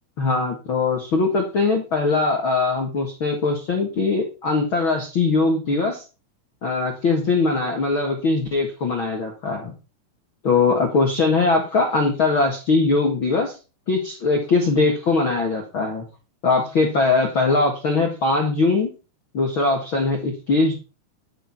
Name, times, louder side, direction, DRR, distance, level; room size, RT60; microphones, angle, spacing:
voice 1, 0.2-6.0 6.6-9.7 10.4-13.5 13.9-16.0 16.4-18.9 19.3-20.7, left 3 dB, 65° left, 2 dB, 1.2 m, -21 dB
12.5 x 6.5 x 6.0 m, 0.33 s
omnidirectional pair, 5.5 m